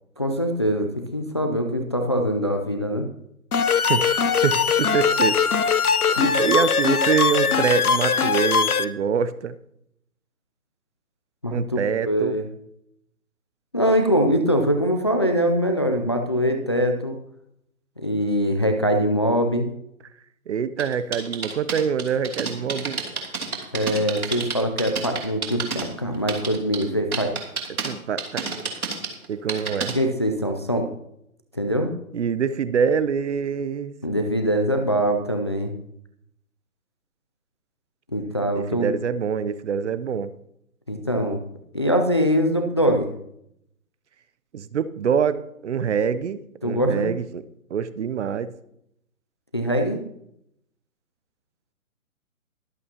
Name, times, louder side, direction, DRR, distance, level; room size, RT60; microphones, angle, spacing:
voice 1, 0.2-3.1 6.1-6.2 11.4-12.4 13.7-17.2 18.0-19.7 23.7-27.3 29.9-30.9 31.5-31.9 34.0-35.7 38.1-38.9 40.9-41.4 41.7-43.1 46.6-47.1 49.5-50.0, equal, 20° left, 4 dB, 0.4 m, -23 dB
sound 1, 3.5-8.8, left 6 dB, 85° left, 0.9 m, -21 dB
voice 2, 4.4-5.4 6.2-9.6 11.5-12.4 20.5-23.0 27.7-28.5 29.3-30.0 32.1-33.9 38.5-40.3 44.5-48.5, right 7 dB, 55° right, 14 dB, 0.8 m, -25 dB
sound 2, 20.8-25.8 26.1-26.8 27.1-27.9 28.2-29.9, right 5 dB, 80° right, 3.0 m, -29 dB
22.5 x 8.4 x 2.9 m, 0.76 s
hypercardioid pair, 145°, 43 cm